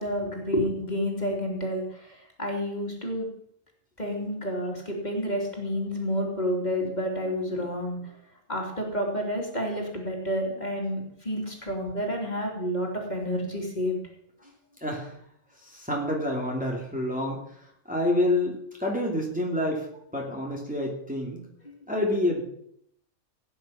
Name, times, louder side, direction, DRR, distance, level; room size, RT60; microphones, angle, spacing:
voice 1, 0.0-3.3 4.0-8.1 8.5-14.0 21.6-21.7, equal, 30° left, 0 dB, 3.1 m, -30 dB
voice 2, 14.8-15.1 15.6-17.4 17.9-19.9 20.1-21.4 21.9-22.4, left 1 dB, 5° right, -2 dB, 2.7 m, -28 dB
17.5 x 9.6 x 5.8 m, 0.70 s
omnidirectional pair, 1.4 m